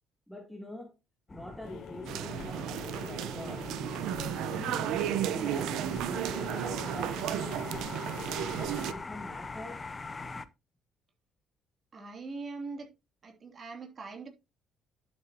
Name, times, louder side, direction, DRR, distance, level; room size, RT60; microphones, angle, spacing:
voice 1, 0.3-0.9 1.3-3.7 4.1-9.8, left 1 dB, ahead, 1.6 m, -45 dB
sound 1, 1.3-10.5, left 3 dB, 20° left, 0.7 m, -43 dB
sound 2, 1.6-9.6, left 5 dB, 65° left, 2.5 m, -46 dB
sound 3, 2.1-8.9, right 11 dB, 80° right, 0.9 m, -34 dB
voice 2, 11.9-12.9 13.2-14.3, right 3 dB, 30° right, 3.1 m, -41 dB
11.5 x 7.5 x 2.9 m
cardioid pair, 165°, 0 cm